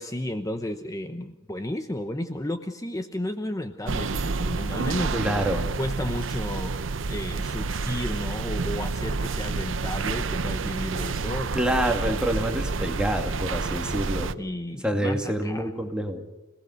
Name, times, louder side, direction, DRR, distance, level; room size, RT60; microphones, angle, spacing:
voice 1, 0.0-5.2 5.8-6.7 7.1-11.5 14.4-15.7, left 1 dB, 20° left, 7 dB, 0.9 m, -33 dB
sound 1, 3.9-14.3, right 4 dB, 85° right, 0.8 m, -29 dB
voice 2, 5.1-5.6 11.5-14.3 14.8-16.2, right 1 dB, 5° right, 3 dB, 2.3 m, -27 dB
27.5 x 18.5 x 6.5 m, 1.0 s
head